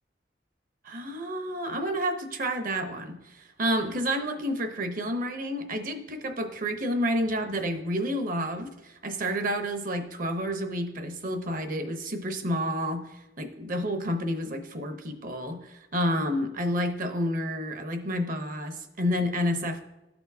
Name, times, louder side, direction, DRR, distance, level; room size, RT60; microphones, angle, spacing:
voice 1, 0.8-13.1 13.4-19.8, equal, 50° right, 6 dB, 0.8 m, -30 dB
12.5 x 4.3 x 2.7 m, 0.94 s
head